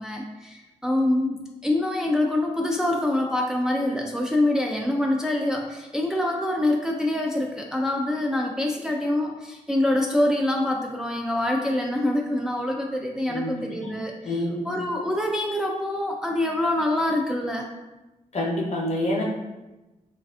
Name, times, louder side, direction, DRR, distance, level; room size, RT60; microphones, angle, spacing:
voice 1, 0.0-14.3 14.6-17.7, left 1 dB, 5° right, 1 dB, 0.3 m, -25 dB
voice 2, 13.3-13.9 14.2-14.7 18.3-19.2, left 1 dB, 55° left, -2 dB, 0.7 m, -27 dB
3.2 x 2.5 x 2.3 m, 1.1 s
cardioid pair, 60°, 14 cm